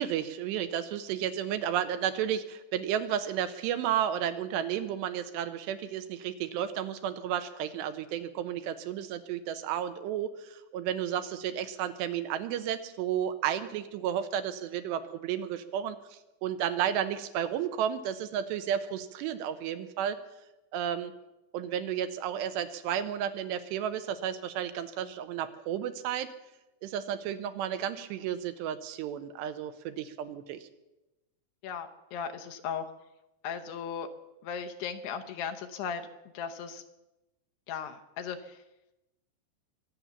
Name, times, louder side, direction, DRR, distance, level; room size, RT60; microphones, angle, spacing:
voice 1, 0.0-20.2 20.7-21.1 21.5-26.3 26.8-30.7, right 9 dB, 80° right, 10 dB, 2.8 m, -32 dB
voice 2, 31.6-32.8 33.4-34.1 34.4-36.1 36.3-36.8 37.7-38.6, left 7 dB, 75° left, 6 dB, 2.7 m, -37 dB
23.5 x 8.6 x 7.0 m, 0.97 s
omnidirectional pair, 5.3 m